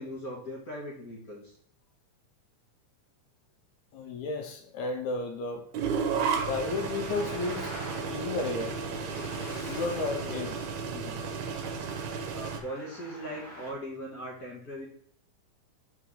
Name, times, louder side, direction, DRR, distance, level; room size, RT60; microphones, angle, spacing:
voice 1, 0.0-1.6 10.2-10.6 12.2-14.8, equal, 45° left, 1.3 m, -39 dB
voice 2, 3.9-5.7 6.5-7.7 8.1-8.8 9.7-10.5 10.9-11.2, left 3 dB, 75° left, 1.9 m, -33 dB
sound 1, 5.7-12.6, right 6 dB, 75° right, 2.1 m, -33 dB
Traffic noise roadway noise, 6.5-13.7, left 1 dB, 25° left, 1.2 m, -45 dB
sound 2, 7.3-12.3, right 3 dB, 25° right, 1.8 m, -51 dB
5.0 x 4.5 x 5.6 m
omnidirectional pair, 3.6 m